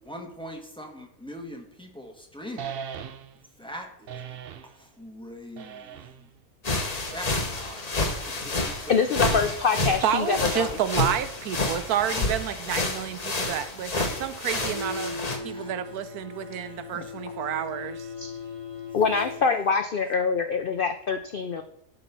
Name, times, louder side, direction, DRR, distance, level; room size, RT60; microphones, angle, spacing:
voice 1, 0.0-2.8 3.6-4.4 4.6-6.3 7.1-9.4 15.4-16.0 16.6-17.2, equal, 5° left, 2 dB, 1.3 m, -42 dB
sound 1, 2.6-3.5 4.1-4.8 5.6-6.3 7.1-7.7 8.6-9.3, right 7 dB, 60° right, 0.6 m, -40 dB
sound 2, 6.6-15.4, left 2 dB, 30° left, 1.1 m, -29 dB
voice 2, 8.9-10.7 18.2-18.3 18.9-21.6, left 5 dB, 60° left, 7 dB, 0.5 m, -25 dB
voice 3, 9.8-15.2 15.4-18.1, right 10 dB, 85° right, 12 dB, 1.2 m, -30 dB
sound 3, 14.5-19.5, left 4 dB, 25° right, 1.4 m, -38 dB
11.5 x 4.1 x 5.5 m, 0.76 s
omnidirectional pair, 1.6 m